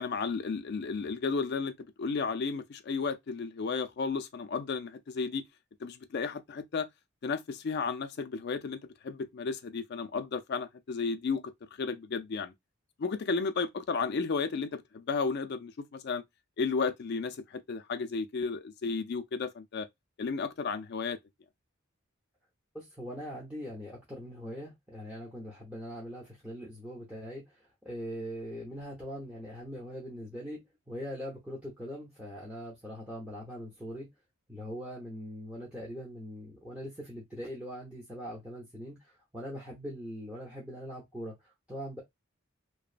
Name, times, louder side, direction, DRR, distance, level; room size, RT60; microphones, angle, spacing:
voice 1, 0.0-5.4 5.8-6.9 7.2-11.5 11.8-12.5 13.0-16.2 16.6-19.9 20.2-21.2, left 4 dB, 50° left, 0.4 m, -33 dB
voice 2, 22.7-34.1 34.5-42.0, equal, 5° right, 0.7 m, -41 dB
2.9 x 2.0 x 2.4 m
head